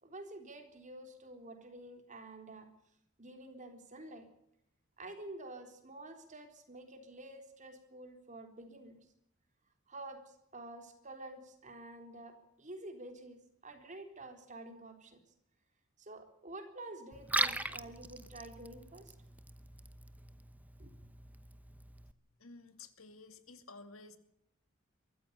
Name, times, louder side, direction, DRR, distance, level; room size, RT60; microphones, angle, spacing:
voice 1, 0.0-2.7 3.2-4.3 5.0-9.0 9.9-10.2 10.5-15.2 16.0-19.1 20.8-20.9, right 2 dB, 35° right, 5 dB, 3.9 m, -49 dB
Liquid, 17.1-22.1, right 2 dB, 10° right, 0.9 m, -40 dB
voice 2, 22.4-24.2, left 3 dB, 90° left, 10 dB, 2.5 m, -53 dB
23.0 x 14.5 x 8.3 m, 0.75 s
head